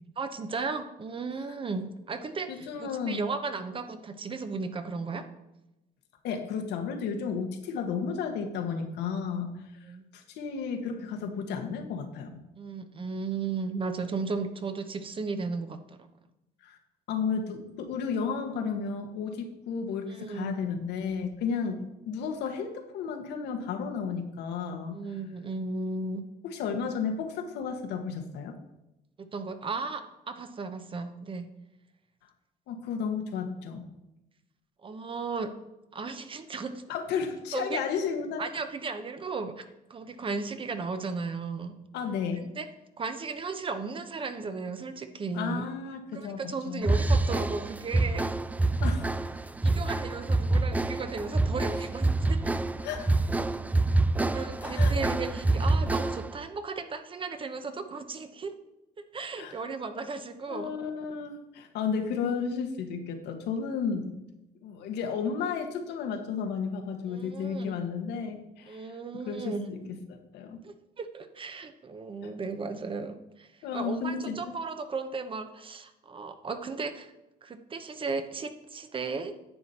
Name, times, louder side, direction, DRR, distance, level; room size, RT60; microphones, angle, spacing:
voice 1, 0.2-5.2 9.9-10.1 12.6-16.1 20.1-20.6 24.9-26.3 29.2-31.5 34.8-35.5 35.9-36.8 37.5-37.8 38.4-39.6 39.9-41.8 42.4-42.7 43.0-45.7 46.1-48.3 49.6-52.6 54.1-58.5 59.1-60.7 67.1-67.8 68.7-69.7 70.6-77.1 77.4-79.3, right 4 dB, 30° right, 9 dB, 0.9 m, -35 dB
voice 2, 2.5-3.2 6.2-9.5 10.1-12.4 16.6-16.8 17.1-25.0 26.4-28.6 32.7-33.9 36.9-38.4 41.9-42.4 45.3-46.9 48.8-49.1 52.8-53.2 54.6-54.9 59.4-59.5 60.5-64.1 64.6-68.9 69.2-70.6 73.6-74.5, left 6 dB, 80° left, 5 dB, 1.5 m, -33 dB
sound 1, 46.8-56.4, right 2 dB, 10° right, 0.4 m, -26 dB
10.0 x 7.4 x 4.3 m, 0.93 s
cardioid pair, 110°, 17 cm